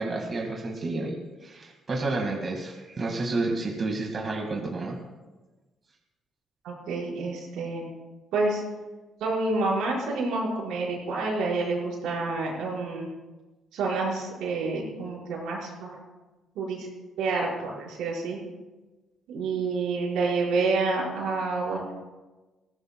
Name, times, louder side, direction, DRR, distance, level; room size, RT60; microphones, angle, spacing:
voice 1, 0.0-5.0, right 2 dB, 35° right, 0 dB, 2.1 m, -30 dB
voice 2, 6.6-7.9 8.3-8.6 9.2-13.1 13.7-16.0 16.6-16.9 17.2-18.4 19.3-21.9, right 3 dB, 90° right, -4 dB, 5.4 m, -28 dB
20.5 x 16.5 x 2.4 m, 1.2 s
cardioid pair, 120°, 0 cm